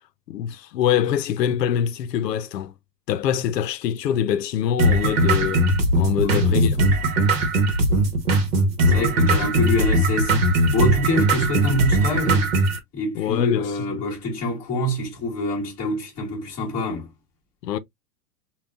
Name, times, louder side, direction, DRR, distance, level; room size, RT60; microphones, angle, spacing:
voice 1, 0.3-2.7 3.1-5.7 6.0-6.8 8.8-9.1 13.2-13.7 17.6-17.8, left 9 dB, 90° left, 0.7 m, -24 dB
sound 1, 4.8-12.8, right 1 dB, 40° right, 1.0 m, -19 dB
voice 2, 6.2-6.9 8.8-12.5 12.9-17.1, left 1 dB, 15° left, 1.5 m, -26 dB
5.6 x 2.3 x 2.3 m
supercardioid pair, 170°, 48 cm